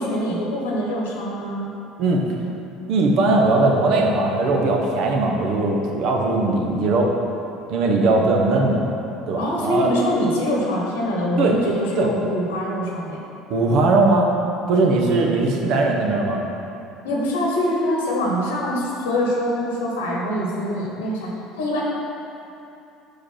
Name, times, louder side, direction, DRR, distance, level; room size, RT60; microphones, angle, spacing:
voice 1, 0.0-1.7 9.3-13.2 17.0-21.3 21.6-21.8, equal, 85° left, -2 dB, 1.1 m, -24 dB
voice 2, 2.9-7.1 7.7-8.9 9.3-9.9 11.4-11.5 12.0-12.1 13.5-14.3 14.7-16.4, right 2 dB, 60° right, 0 dB, 0.9 m, -19 dB
5.1 x 4.9 x 5.8 m, 2.8 s
hypercardioid pair, 75°, 0 cm